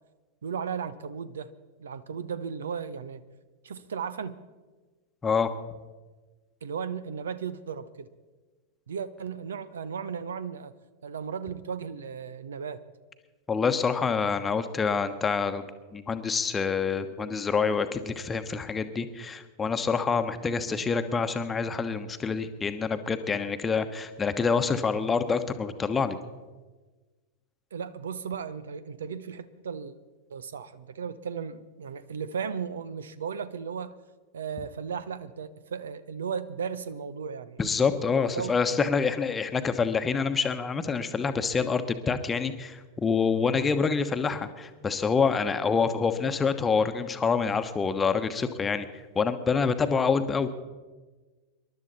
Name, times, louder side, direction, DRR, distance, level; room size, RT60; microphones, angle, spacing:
voice 1, 0.4-1.5 1.8-3.2 3.6-4.4 6.6-8.1 8.9-10.7 11.0-12.8 27.7-29.9 30.3-33.9 34.3-37.6 38.1-39.0, right 6 dB, 65° right, 15 dB, 0.8 m, -35 dB
voice 2, 13.5-15.6 15.9-26.2 37.6-48.9 49.1-50.5, left 5 dB, 15° left, 9 dB, 1.1 m, -26 dB
26.5 x 12.0 x 4.2 m, 1.3 s
figure-of-eight pair, 90°, 0 cm